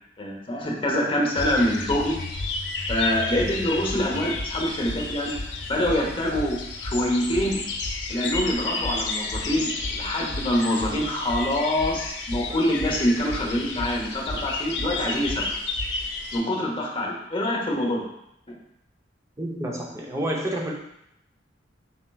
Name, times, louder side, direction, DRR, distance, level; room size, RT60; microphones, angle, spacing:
voice 1, 0.2-2.2 2.9-5.4 5.7-7.6 8.1-15.4 16.3-18.1 18.5-18.6, left 1 dB, 30° left, -2 dB, 0.8 m, -25 dB
sound 1, 1.4-16.4, left 3 dB, 70° left, 0.5 m, -31 dB
voice 2, 19.4-20.7, right 1 dB, 15° right, -2 dB, 0.6 m, -29 dB
4.3 x 4.2 x 2.3 m, 0.80 s
head